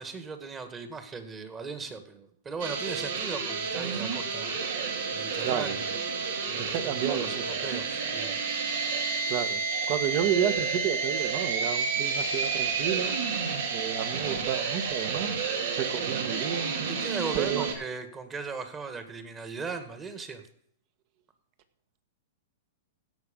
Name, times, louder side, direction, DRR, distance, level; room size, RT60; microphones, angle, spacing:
voice 1, 0.0-4.5 5.1-5.8 6.5-6.8 7.1-8.4 16.9-20.4, right 4 dB, 20° right, 8 dB, 1.8 m, -38 dB
sound 1, 2.6-17.7, right 5 dB, 70° right, 2.4 m, -30 dB
voice 2, 5.4-5.8 6.6-7.4 9.2-9.6 9.9-13.2 13.7-15.3 15.7-16.7 17.3-17.7, right 9 dB, 45° right, 9 dB, 1.6 m, -31 dB
16.0 x 6.2 x 5.4 m, 0.66 s
hypercardioid pair, 135°, 0 cm